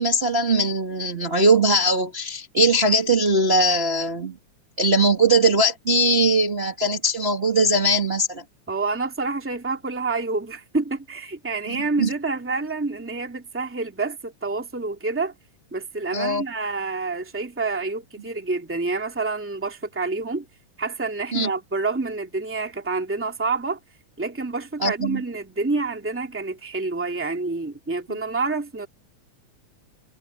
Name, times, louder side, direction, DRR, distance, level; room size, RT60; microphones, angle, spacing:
voice 1, 0.0-4.3 4.8-8.4 11.7-12.1 16.1-16.4 21.3-21.5 24.8-25.2, right 1 dB, 25° right, 1.9 m, -20 dB
voice 2, 8.7-15.3 15.7-20.4 20.8-23.8 24.2-28.9, right 3 dB, 5° right, 2.1 m, -28 dB
omnidirectional pair, 3.4 m